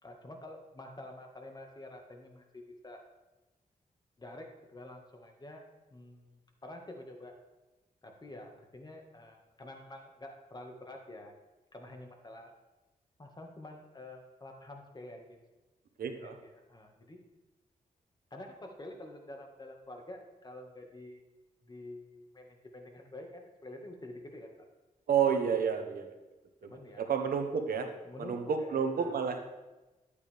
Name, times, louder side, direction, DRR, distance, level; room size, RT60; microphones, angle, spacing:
voice 1, 0.0-3.0 4.2-5.6 5.9-7.3 8.0-11.3 11.7-12.5 13.2-15.4 16.1-17.2 18.3-21.2 21.6-24.7 25.3-26.0 26.6-27.1 28.0-29.2, left 1 dB, 30° left, 2 dB, 1.8 m, -48 dB
voice 2, 16.0-16.3 25.1-26.1 27.0-27.9 28.2-29.4, right 7 dB, 85° right, 6 dB, 1.1 m, -30 dB
12.0 x 8.6 x 3.5 m, 1.1 s
cardioid pair, 80°, 15 cm